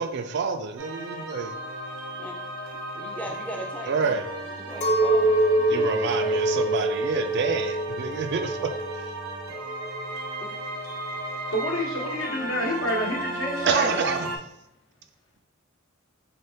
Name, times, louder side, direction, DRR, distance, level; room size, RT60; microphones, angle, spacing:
voice 1, 0.0-1.5 3.9-4.2 5.7-8.7 13.7-14.4, right 5 dB, 55° right, 6 dB, 0.3 m, -28 dB
sound 1, 0.8-14.4, right 2 dB, 85° right, 0.7 m, -35 dB
voice 2, 2.9-6.4 10.4-10.6, equal, 5° left, 0 dB, 0.4 m, -39 dB
Chink clink, 4.8-10.3, right 1 dB, 35° left, 0.8 m, -25 dB
voice 3, 11.5-14.1, left 1 dB, 70° left, -1 dB, 1.0 m, -28 dB
4.0 x 3.4 x 2.7 m, 0.83 s
head